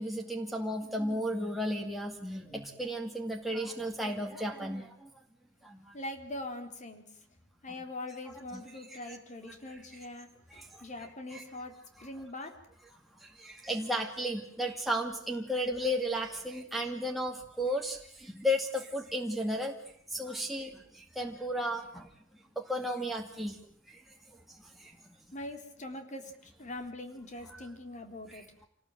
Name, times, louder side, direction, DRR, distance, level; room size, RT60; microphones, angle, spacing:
voice 1, 0.0-5.1 5.6-5.9 8.5-8.6 8.9-9.2 9.7-9.8 10.5-10.8 11.3-11.4 12.0-12.1 13.2-19.8 20.1-22.1 22.6-23.6 23.9-24.0 24.5-25.0 27.5-27.6 28.3-28.4, equal, ahead, 0 dB, 2.4 m, -34 dB
voice 2, 5.9-7.0 7.6-11.7 12.0-12.5 25.3-28.5, left 1 dB, 40° left, 6 dB, 3.8 m, -42 dB
27.5 x 19.0 x 9.1 m, 0.63 s
head